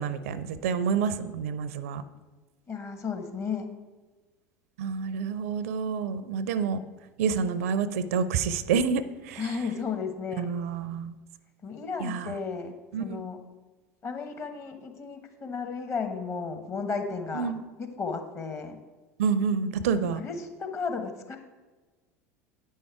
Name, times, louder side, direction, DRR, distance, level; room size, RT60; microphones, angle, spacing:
voice 1, 0.0-2.0 4.8-6.8 7.2-9.5 10.4-11.1 12.0-12.4 12.9-13.2 17.3-17.6 19.2-20.2, right 6 dB, 65° right, 14 dB, 0.5 m, -28 dB
voice 2, 2.7-3.7 9.4-10.5 11.6-12.7 13.0-13.4 14.0-17.5 17.8-18.8 20.2-21.4, left 5 dB, 35° left, 5 dB, 1.2 m, -34 dB
9.2 x 5.5 x 4.7 m, 1.2 s
figure-of-eight pair, 75°, 8 cm